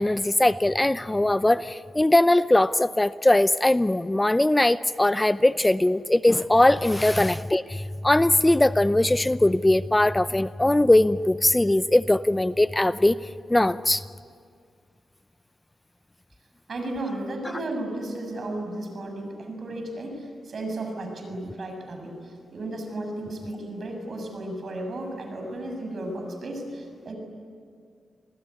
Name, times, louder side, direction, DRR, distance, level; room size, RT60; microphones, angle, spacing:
voice 1, 0.0-13.2 13.5-14.0, left 1 dB, 15° left, 15 dB, 0.6 m, -20 dB
voice 2, 16.7-27.2, right 1 dB, 60° right, 4 dB, 6.9 m, -34 dB
29.0 x 21.0 x 9.7 m, 2.2 s
cardioid pair, 50°, 0 cm